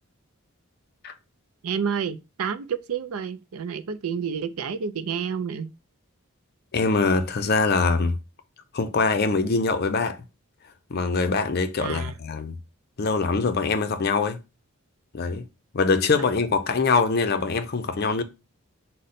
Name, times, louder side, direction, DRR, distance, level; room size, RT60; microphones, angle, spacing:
voice 1, 1.6-5.7 11.8-12.2 16.2-16.3, right 7 dB, 80° right, 0.4 m, -29 dB
voice 2, 6.7-8.2 8.7-10.2 10.9-12.6 13.0-14.4 15.1-15.5 15.7-18.2, left 4 dB, 45° left, 0.5 m, -23 dB
5.0 x 2.1 x 4.1 m
head